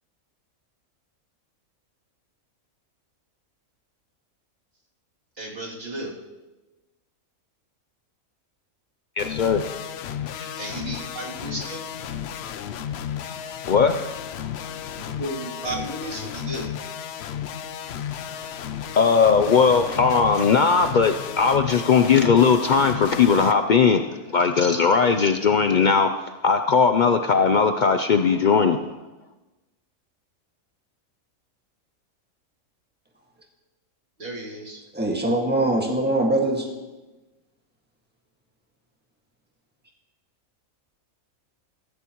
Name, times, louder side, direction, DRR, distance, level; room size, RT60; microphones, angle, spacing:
voice 1, 5.4-6.1 10.6-11.8 15.0-16.7 34.2-34.8, right 1 dB, 40° right, -4 dB, 2.9 m, -33 dB
voice 2, 9.2-9.6 10.4-10.5 13.7-14.1 18.2-18.3 19.0-24.0 24.3-26.1 26.4-28.8, left 5 dB, 90° left, 7 dB, 0.4 m, -18 dB
sound 1, 9.2-23.5, left 9 dB, 60° left, 0.7 m, -33 dB
voice 3, 34.9-36.7, right 1 dB, 5° right, 0 dB, 1.7 m, -22 dB
15.5 x 15.0 x 3.0 m, 1.1 s
omnidirectional pair, 1.5 m